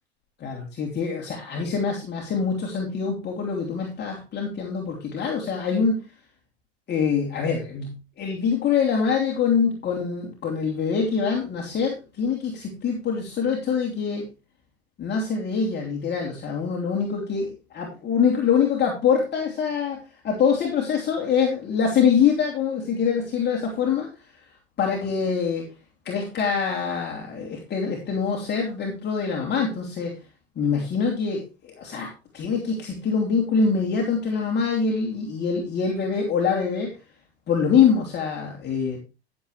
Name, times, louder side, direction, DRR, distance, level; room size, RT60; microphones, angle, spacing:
voice 1, 0.4-6.0 6.9-14.2 15.0-24.1 24.8-25.6 26.0-30.1 30.6-36.9 37.5-39.0, left 6 dB, 30° left, 0 dB, 3.2 m, -24 dB
14.0 x 7.8 x 3.3 m, 0.29 s
hypercardioid pair, 85°, 32 cm